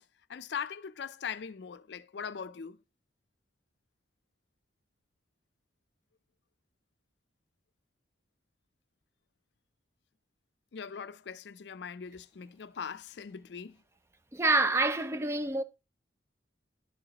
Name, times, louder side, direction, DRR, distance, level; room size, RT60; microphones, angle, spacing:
voice 1, 0.3-2.8 10.7-13.8, left 6 dB, 65° left, 0.4 m, -40 dB
voice 2, 14.3-15.6, right 2 dB, 15° right, 0.3 m, -27 dB
11.0 x 6.8 x 2.9 m
head